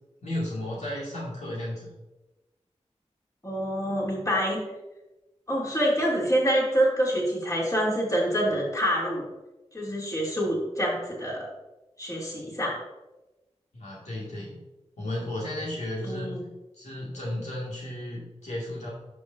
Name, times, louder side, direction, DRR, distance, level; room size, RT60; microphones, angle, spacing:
voice 1, 0.2-1.9 13.7-14.6 15.0-16.3 16.7-18.9, left 1 dB, 80° left, -5 dB, 2.1 m, -34 dB
voice 2, 3.4-4.6 5.5-9.3 9.7-11.5 12.0-12.8 16.0-16.4, equal, 30° left, -4 dB, 2.9 m, -26 dB
10.0 x 6.3 x 2.7 m, 1.0 s
cardioid pair, 40°, 12 cm